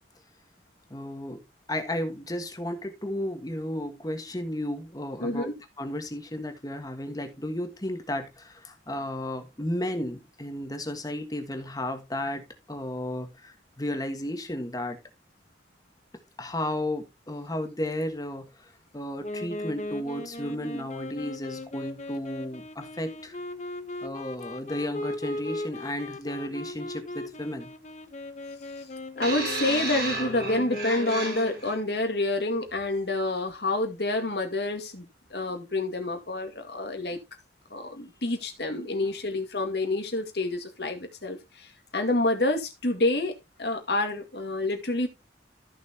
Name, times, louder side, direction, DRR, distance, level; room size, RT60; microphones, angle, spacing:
voice 1, 0.9-1.4 1.7-5.5 5.8-15.0 16.4-23.4 24.0-27.7, left 1 dB, 20° left, 1.5 m, -33 dB
voice 2, 5.2-5.5 29.2-37.2 37.7-43.3 43.6-45.1, left 2 dB, 65° left, 2.0 m, -28 dB
Wind instrument woodwind instrument, 19.2-31.7, left 2 dB, 40° left, 1.0 m, -38 dB
sound 1, 29.2-31.8 32.7-32.9, right 2 dB, 60° right, 5.0 m, -33 dB
14.5 x 6.0 x 2.9 m
head